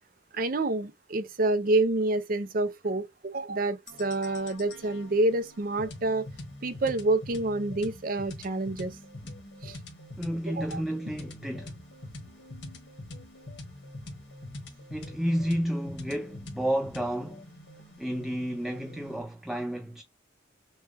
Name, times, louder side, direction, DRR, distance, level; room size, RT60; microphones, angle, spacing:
voice 1, 0.3-6.3 6.6-9.0 9.6-9.8 10.5-10.8 18.7-18.8, right 2 dB, 50° right, 0.6 m, -28 dB
sound 1, 3.9-19.2, left 1 dB, 70° left, 1.5 m, -44 dB
voice 2, 10.2-11.7 14.9-17.4 18.0-20.0, equal, ahead, 0.4 m, -31 dB
6.3 x 2.3 x 3.3 m
head